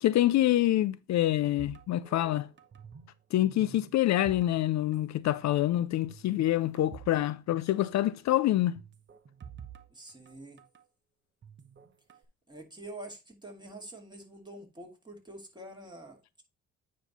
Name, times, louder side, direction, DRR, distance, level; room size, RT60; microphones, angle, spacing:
voice 1, 0.0-2.5 3.3-8.8, left 14 dB, 65° left, 0.5 m, -26 dB
sound 1, 1.6-3.1 3.4-5.0 5.2-5.5 6.1-7.2 7.5-7.6 8.8-10.8 11.4-12.2, right 7 dB, 40° right, 1.0 m, -49 dB
voice 2, 9.9-10.6 12.5-16.4, right 1 dB, 15° right, 2.6 m, -46 dB
9.1 x 3.1 x 5.3 m
cardioid pair, 90°, 30 cm